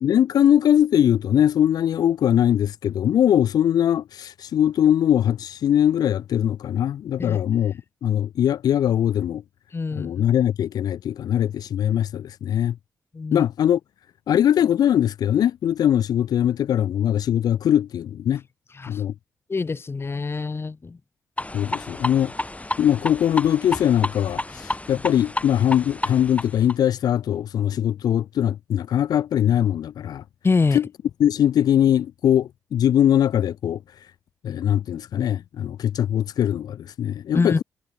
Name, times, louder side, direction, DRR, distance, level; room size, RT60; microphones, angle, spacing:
voice 1, 0.0-9.4 9.9-12.8 13.3-13.8 14.3-18.4 18.9-19.1 21.5-22.3 22.8-30.2 30.7-30.9 31.2-33.8 34.4-37.6, left 10 dB, 70° left, 0.7 m, -21 dB
voice 2, 9.7-10.1 13.1-13.5 18.8-19.0 19.5-21.0 30.4-30.8 37.3-37.6, left 4 dB, 35° left, 0.8 m, -24 dB
sound 1, 21.4-26.7, left 2 dB, 20° left, 3.9 m, -31 dB
hypercardioid pair, 45°, 7 cm